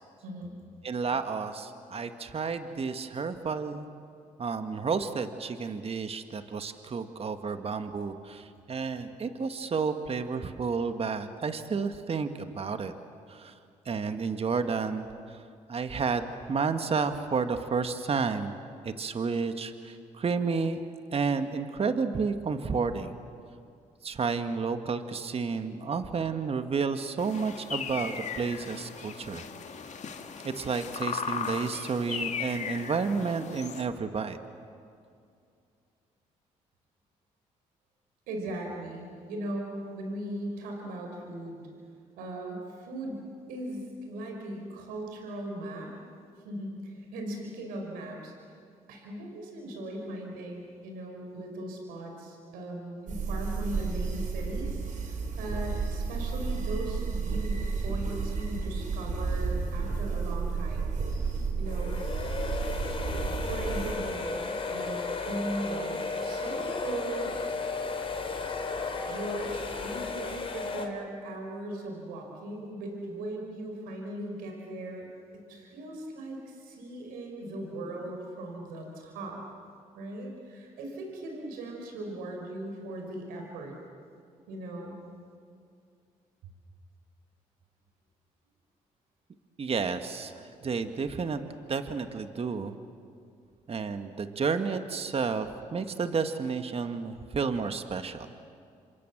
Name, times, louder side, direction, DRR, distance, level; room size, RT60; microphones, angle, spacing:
voice 1, 0.2-0.6 38.3-41.6 42.2-45.9 46.4-48.5 48.9-60.9 61.6-61.9 62.9-67.3 69.0-75.1 75.3-79.4 80.0-83.8 84.5-85.0, right 1 dB, 90° right, 1 dB, 5.4 m, -38 dB
voice 2, 0.8-3.9 4.4-12.9 13.3-13.5 13.8-18.6 18.8-20.8 21.1-23.1 24.0-29.5 29.8-30.0 30.4-34.4 89.6-91.4 91.7-92.8 93.7-98.3, right 5 dB, 45° right, 8 dB, 1.8 m, -31 dB
sound 1, 27.2-33.8, left 6 dB, 55° left, 2.3 m, -37 dB
sound 2, 53.1-63.9, right 4 dB, 60° right, 4.7 m, -32 dB
sound 3, 61.7-70.9, left 4 dB, 40° left, 3.6 m, -34 dB
29.0 x 26.5 x 7.5 m, 2.4 s
supercardioid pair, 65°, 14 cm